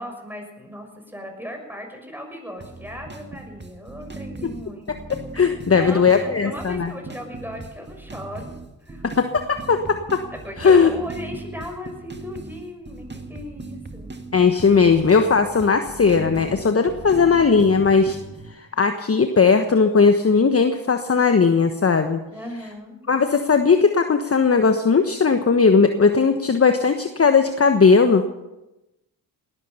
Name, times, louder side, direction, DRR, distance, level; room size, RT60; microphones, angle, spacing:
voice 1, 0.0-4.9 5.6-8.5 8.8-9.2 10.4-14.1 22.3-23.0, left 1 dB, 5° right, 3 dB, 6.5 m, -37 dB
sound 1, 2.6-18.5, right 3 dB, 20° right, 2.1 m, -38 dB
voice 2, 4.9-6.9 9.0-10.2 10.6-10.9 14.3-18.2 18.5-22.2 23.1-28.3, left 5 dB, 30° left, 7 dB, 1.3 m, -18 dB
19.0 x 13.0 x 5.7 m, 0.98 s
hypercardioid pair, 40°, 49 cm